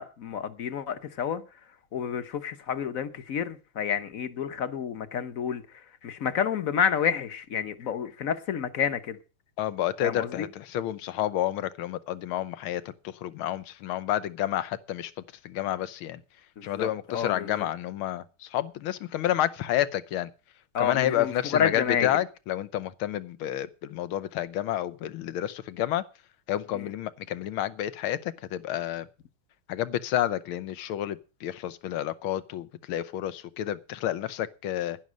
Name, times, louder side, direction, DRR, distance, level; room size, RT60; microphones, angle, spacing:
voice 1, 0.0-1.4 1.9-9.2 10.0-10.5 16.6-17.7 20.7-22.2 26.7-26.9, left 8 dB, 50° left, 1.2 m, -30 dB
voice 2, 9.6-15.1 15.4-16.2 16.6-20.3 20.8-26.0 26.5-29.1 29.7-35.0, left 12 dB, 85° left, 1.7 m, -30 dB
11.0 x 10.5 x 6.2 m
omnidirectional pair, 2.3 m